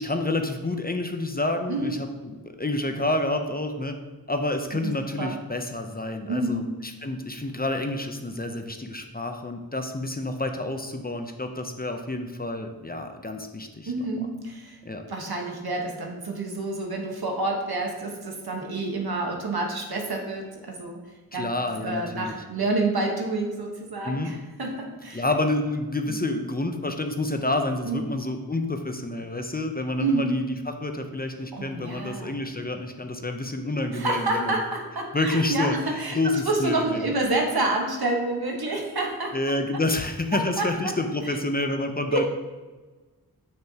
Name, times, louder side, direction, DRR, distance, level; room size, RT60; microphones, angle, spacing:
voice 1, 0.0-4.0 4.3-13.9 14.8-15.0 21.3-22.4 24.0-24.3 25.1-34.6 35.1-37.0 39.3-42.3, left 2 dB, 25° left, 5 dB, 0.6 m, -29 dB
voice 2, 6.3-6.7 13.8-14.8 15.1-21.0 21.3-21.5 21.8-25.2 26.1-26.2 27.8-28.1 30.0-30.4 31.5-32.3 33.9-39.4 40.3-40.9 41.2-41.4 42.1-42.3, right 2 dB, 75° right, 1 dB, 1.2 m, -28 dB
6.8 x 6.4 x 2.8 m, 1.3 s
wide cardioid pair, 60°, 37 cm